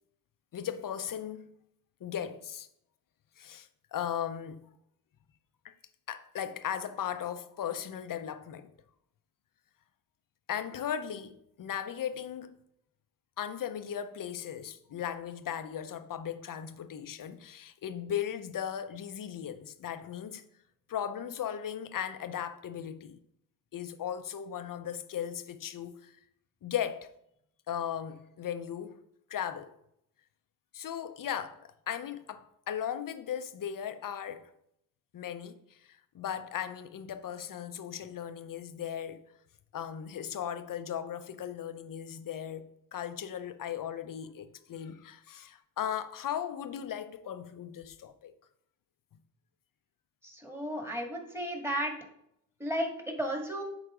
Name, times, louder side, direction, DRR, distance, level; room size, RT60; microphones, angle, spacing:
voice 1, 0.5-1.5 2.0-2.7 3.4-4.7 5.6-5.7 6.1-8.7 10.5-12.6 13.4-20.4 20.9-23.2 23.7-26.2 26.6-27.1 27.7-29.0 29.3-29.7 30.7-34.5 35.1-39.2 39.7-48.3, left 9 dB, 55° left, 0.7 m, -37 dB
voice 2, 50.2-51.9 52.6-53.6, equal, 5° right, 2.1 m, -34 dB
9.7 x 4.1 x 3.7 m
cardioid pair, 60°, 40 cm